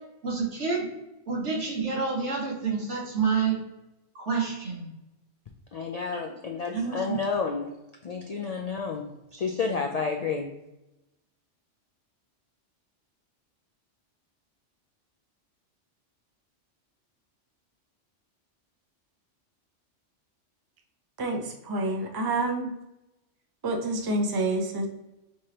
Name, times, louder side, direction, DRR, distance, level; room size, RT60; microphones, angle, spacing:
voice 1, 0.2-0.9 1.3-3.6 4.1-4.9 6.7-7.2, right 5 dB, 75° right, -3 dB, 1.7 m, -28 dB
voice 2, 5.7-7.7 8.0-10.6, left 5 dB, 80° left, 3 dB, 0.3 m, -31 dB
voice 3, 21.2-22.7 23.6-24.9, right 2 dB, 25° right, 2 dB, 0.5 m, -28 dB
5.5 x 3.2 x 2.8 m, 0.95 s
omnidirectional pair, 1.2 m